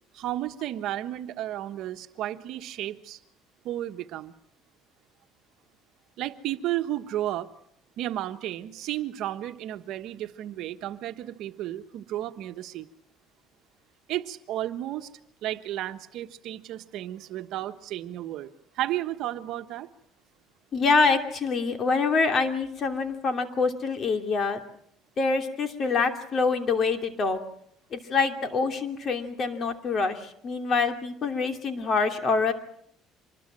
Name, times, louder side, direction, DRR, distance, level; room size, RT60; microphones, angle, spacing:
voice 1, 0.1-3.2 3.6-4.3 6.2-7.5 8.0-12.9 14.1-15.1 15.4-18.5 18.7-19.9, right 13 dB, 65° right, 8 dB, 1.4 m, -33 dB
voice 2, 20.7-24.6 25.2-27.4 27.9-32.5, left 4 dB, 40° left, 6 dB, 2.9 m, -25 dB
25.5 x 21.0 x 7.6 m, 0.71 s
cardioid pair, 125°, 0 cm